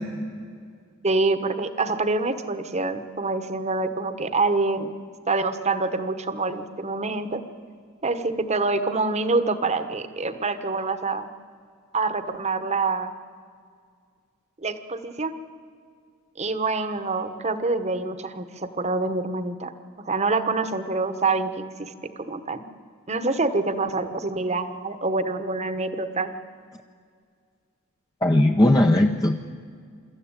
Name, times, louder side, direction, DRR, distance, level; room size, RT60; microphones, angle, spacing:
voice 1, 1.0-4.9 5.3-7.4 8.0-11.3 11.9-13.1 14.6-15.3 16.4-19.7 20.0-21.5 21.8-21.9 22.2-22.6 23.1-26.3, right 3 dB, 35° right, 11 dB, 1.2 m, -26 dB
voice 2, 28.2-29.4, left 1 dB, 20° left, 3 dB, 0.7 m, -18 dB
24.0 x 13.5 x 8.9 m, 2.1 s
head